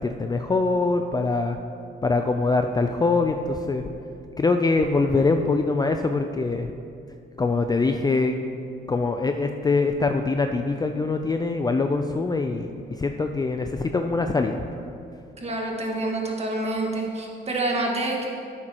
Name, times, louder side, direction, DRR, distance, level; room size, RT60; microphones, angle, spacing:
voice 1, 0.0-1.6 2.0-3.8 4.4-6.7 7.4-8.4 8.9-12.7 13.0-14.7, left 3 dB, 20° left, 5 dB, 0.4 m, -23 dB
voice 2, 15.4-18.3, right 2 dB, 30° right, 0 dB, 1.7 m, -27 dB
11.0 x 8.8 x 3.0 m, 2.5 s
cardioid pair, 90°, 20 cm